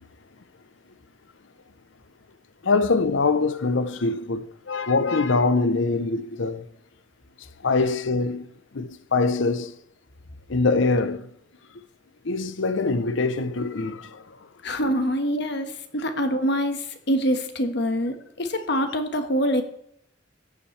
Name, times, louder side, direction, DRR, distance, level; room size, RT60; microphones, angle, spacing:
voice 1, 2.6-6.6 7.6-8.5 8.7-9.7 10.5-11.3 12.2-14.2, left 3 dB, 80° left, 0.7 m, -23 dB
voice 2, 14.6-19.6, equal, 65° left, 1.5 m, -25 dB
14.5 x 10.0 x 3.3 m
head